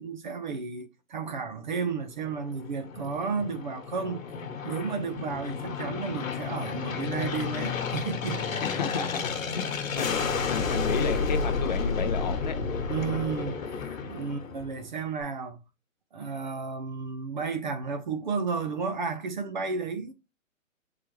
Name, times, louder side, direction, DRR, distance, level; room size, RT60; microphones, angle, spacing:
voice 1, 0.0-4.2 4.6-8.4 9.6-9.9 12.9-13.6 14.1-15.6 16.1-20.1, right 5 dB, 35° right, 0.5 m, -32 dB
Aircraft, 2.2-14.9, left 5 dB, 75° left, 1.3 m, -31 dB
voice 2, 8.6-10.2 10.5-12.6, left 7 dB, 35° left, 0.5 m, -32 dB
4.5 x 3.8 x 3.0 m
hypercardioid pair, 155°, 40 cm